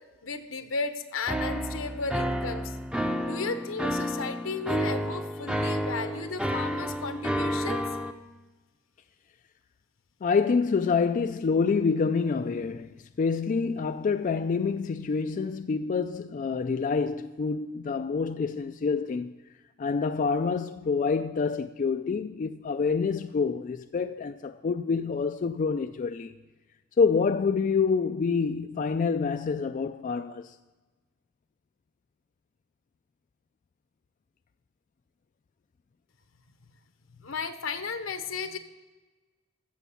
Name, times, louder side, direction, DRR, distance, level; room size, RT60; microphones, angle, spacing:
voice 1, 0.2-2.8 3.2-7.8 37.2-38.6, left 4 dB, 80° left, 1.0 m, -34 dB
sound 1, 1.3-8.1, equal, 5° right, 0.6 m, -30 dB
voice 2, 10.2-19.3 19.8-26.3 27.0-30.6, left 5 dB, 40° left, 0.3 m, -27 dB
15.0 x 7.1 x 5.7 m
head